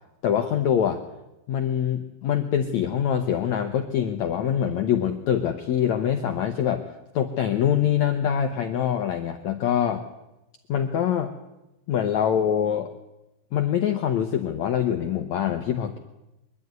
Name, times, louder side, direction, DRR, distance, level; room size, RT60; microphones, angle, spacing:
voice 1, 0.2-1.0 1.5-10.1 10.7-11.3 11.9-12.9 13.5-16.0, left 9 dB, 85° left, 6 dB, 1.6 m, -24 dB
23.0 x 12.0 x 9.5 m, 0.97 s
omnidirectional pair, 4.7 m